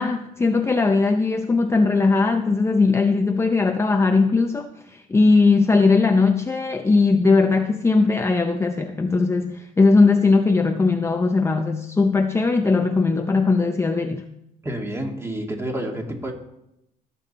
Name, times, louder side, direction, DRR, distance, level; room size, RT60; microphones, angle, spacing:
voice 1, 0.0-14.3, left 3 dB, 15° left, 6 dB, 0.6 m, -19 dB
voice 2, 14.6-16.3, right 1 dB, 15° right, 2 dB, 2.1 m, -29 dB
17.5 x 7.0 x 4.2 m, 0.83 s
cardioid pair, 110°, 17 cm